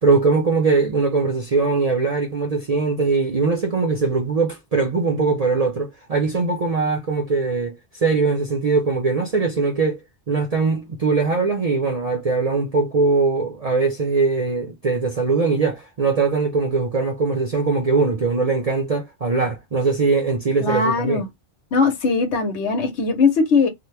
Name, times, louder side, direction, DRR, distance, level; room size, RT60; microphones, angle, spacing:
voice 1, 0.0-10.0 10.3-21.2, right 4 dB, 45° right, 0.6 m, -21 dB
voice 2, 20.6-21.3 21.7-23.7, left 4 dB, 80° left, 1.2 m, -19 dB
2.9 x 2.1 x 3.2 m
omnidirectional pair, 1.2 m